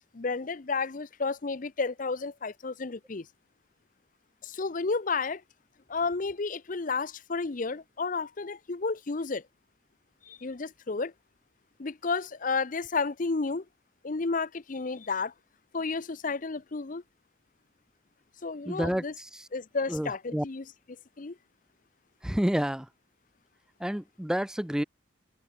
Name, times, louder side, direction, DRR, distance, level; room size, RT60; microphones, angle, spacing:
voice 1, 0.1-3.3 4.4-5.4 5.9-9.4 10.3-11.1 11.8-13.6 14.0-15.3 15.7-17.0 18.4-19.1 19.5-20.6 21.2-21.4, left 4 dB, 40° left, 0.6 m, -31 dB
voice 2, 18.7-19.5 19.9-20.5 22.2-22.9 23.8-24.8, equal, 5° right, 0.3 m, -29 dB
open air
head